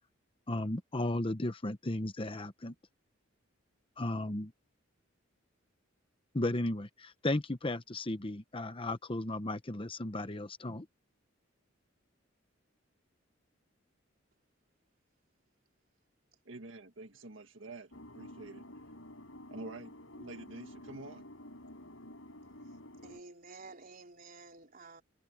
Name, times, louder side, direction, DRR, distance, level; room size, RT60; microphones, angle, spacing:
voice 1, 0.5-2.7 4.0-4.5 6.3-10.8, left 1 dB, 25° left, 1.0 m, -35 dB
voice 2, 16.5-17.9 18.2-18.6 19.5-21.2, right 2 dB, 70° right, 1.8 m, -47 dB
sound 1, 17.9-23.2, left 1 dB, 85° left, 7.3 m, -50 dB
voice 3, 23.0-25.0, right 3 dB, 45° right, 4.1 m, -51 dB
head